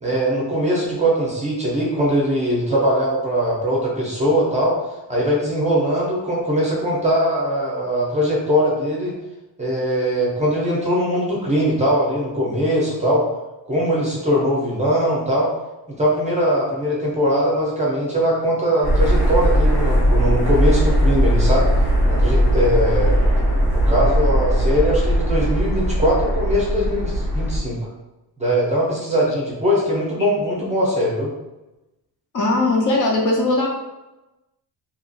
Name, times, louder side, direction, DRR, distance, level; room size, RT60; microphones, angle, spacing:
voice 1, 0.0-4.8 5.1-9.1 9.6-13.2 13.7-15.5 15.9-21.7 22.1-23.2 23.7-27.8 28.4-31.3, equal, 15° right, -5 dB, 0.5 m, -21 dB
sound 1, 18.8-27.6, equal, 90° left, 1.5 m, -18 dB
voice 2, 32.3-33.7, left 2 dB, 50° left, -2 dB, 0.5 m, -19 dB
2.8 x 2.3 x 2.6 m, 1.0 s
wide cardioid pair, 175°, 42 cm